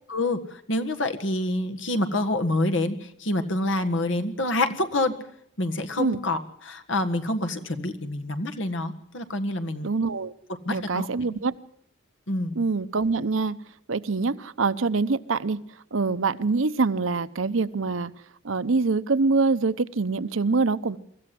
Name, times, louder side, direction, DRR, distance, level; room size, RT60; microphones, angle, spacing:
voice 1, 0.1-5.1 5.6-9.9 10.7-11.1 12.3-12.6, left 1 dB, 70° left, 7 dB, 1.7 m, -27 dB
voice 2, 9.8-10.3 10.7-11.5 12.6-13.6 13.9-15.6 15.9-18.1 18.4-21.0, right 4 dB, 85° right, 13 dB, 0.8 m, -24 dB
24.0 x 14.0 x 7.7 m, 0.68 s
head